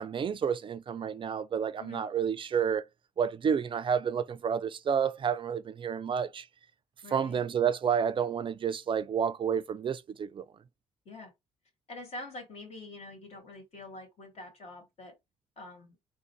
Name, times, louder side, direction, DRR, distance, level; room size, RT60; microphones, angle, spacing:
voice 1, 0.0-2.8 3.2-6.4 7.1-10.4, right 7 dB, 35° right, 0.4 m, -30 dB
voice 2, 7.0-7.4 11.1-11.3 11.9-15.1 15.6-16.0, left 2 dB, 45° left, 2.0 m, -45 dB
3.7 x 2.1 x 4.4 m
figure-of-eight pair, 45°, 14 cm